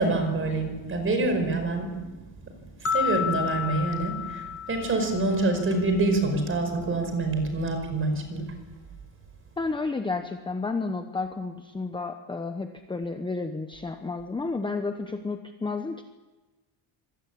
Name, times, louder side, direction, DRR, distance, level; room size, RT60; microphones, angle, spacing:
voice 1, 0.0-2.2 2.8-8.7, right 2 dB, 25° right, 7 dB, 5.1 m, -26 dB
sound 1, 2.8-6.0, left 8 dB, 30° left, 1.9 m, -31 dB
voice 2, 9.6-16.0, left 3 dB, 10° left, 6 dB, 0.9 m, -31 dB
25.0 x 19.0 x 8.6 m, 1.2 s
cardioid pair, 170°, 46 cm